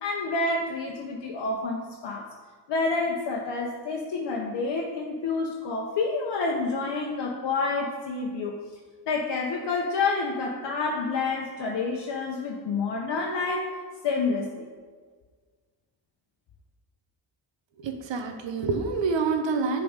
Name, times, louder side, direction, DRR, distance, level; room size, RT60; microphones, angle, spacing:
voice 1, 0.0-2.2 2.7-8.6 9.1-13.7 14.0-14.7, left 3 dB, 60° left, -1 dB, 0.9 m, -28 dB
voice 2, 17.8-19.8, right 4 dB, 65° right, 5 dB, 0.9 m, -27 dB
6.9 x 3.8 x 5.1 m, 1.5 s
cardioid pair, 70°, 47 cm